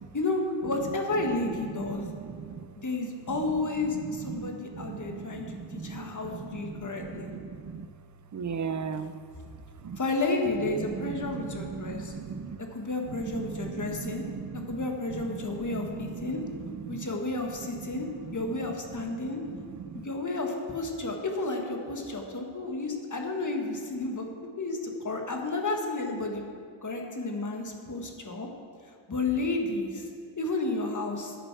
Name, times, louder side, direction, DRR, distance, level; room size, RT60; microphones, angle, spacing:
voice 1, 0.1-2.1 2.8-7.3 10.0-12.1 12.7-14.2 14.7-16.4 16.9-18.1 18.3-19.4 20.0-24.8 25.0-26.4 26.8-28.5 29.1-30.1 30.4-31.4, left 2 dB, 40° left, 2 dB, 1.5 m, -31 dB
voice 2, 1.4-2.6 3.5-3.7 4.1-7.9 8.3-9.1 9.8-10.0 10.7-12.6 13.1-17.1 17.6-18.7 19.0-20.0, right 6 dB, 40° right, 12 dB, 0.5 m, -38 dB
9.2 x 9.2 x 6.0 m, 2.2 s
wide cardioid pair, 115°, 47 cm